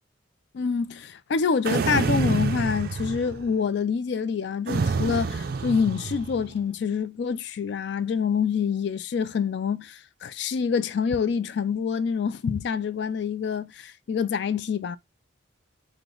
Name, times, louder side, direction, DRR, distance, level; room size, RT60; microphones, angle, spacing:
voice 1, 0.5-15.0, left 6 dB, 60° left, 0.3 m, -26 dB
sound 1, 1.6-3.5 4.7-6.5, right 4 dB, 50° right, 0.4 m, -27 dB
4.7 x 2.1 x 3.7 m
head